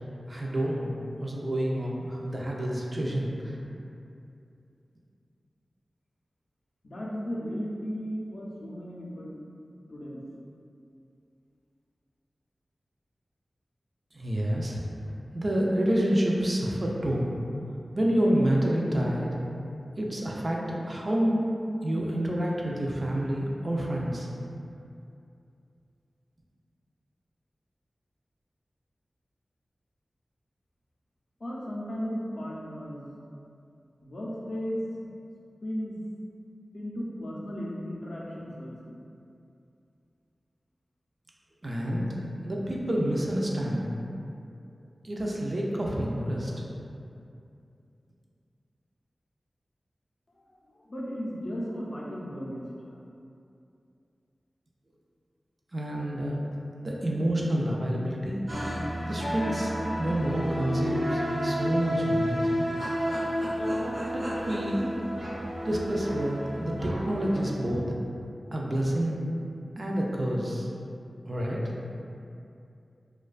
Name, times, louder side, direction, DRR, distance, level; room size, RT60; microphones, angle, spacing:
voice 1, 0.3-3.5 14.1-14.8 15.3-17.3 17.9-19.3 20.0-20.6 20.9-21.4 21.8-24.3 41.6-42.1 42.4-43.8 45.0-46.6 55.7-56.4 56.8-58.4 59.1-62.5 64.1-64.9 65.6-67.9 68.5-69.2 69.8-70.7 71.3-71.7, right 1 dB, 45° right, -3 dB, 0.3 m, -28 dB
voice 2, 6.8-9.3 9.9-10.2 31.4-33.1 34.0-35.1 35.6-36.0 36.7-39.0 50.4-53.0, equal, 65° left, -5 dB, 0.4 m, -35 dB
sound 1, 58.5-67.5, equal, 75° right, 0.7 m, -31 dB
2.4 x 2.2 x 2.3 m, 2.5 s
wide cardioid pair, 65°, 0 cm